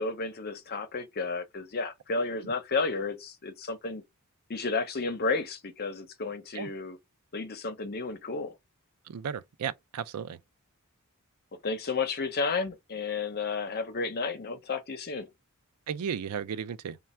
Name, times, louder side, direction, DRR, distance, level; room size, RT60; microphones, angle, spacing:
voice 1, 0.0-4.0 4.5-7.0 7.3-8.6 11.6-15.3, left 4 dB, 45° left, 0.8 m, -32 dB
voice 2, 9.1-10.4 15.9-17.0, right 7 dB, 85° right, 0.4 m, -35 dB
3.2 x 2.3 x 4.3 m
head